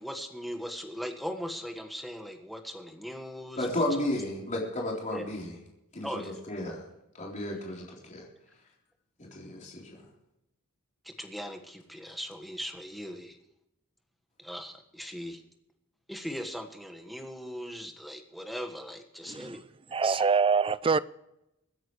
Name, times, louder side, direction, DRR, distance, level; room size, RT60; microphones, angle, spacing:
voice 1, 0.0-3.8 5.1-5.3 6.0-6.4 11.0-13.4 14.4-15.4 16.1-19.6 20.0-20.2, equal, ahead, 1.5 m, -39 dB
voice 2, 3.6-5.5 5.9-6.1 6.5-6.8 7.2-8.2 9.2-10.0, left 1 dB, 35° left, 3.9 m, -33 dB
voice 3, 19.9-21.0, right 5 dB, 25° right, 0.4 m, -25 dB
24.5 x 10.0 x 3.2 m
head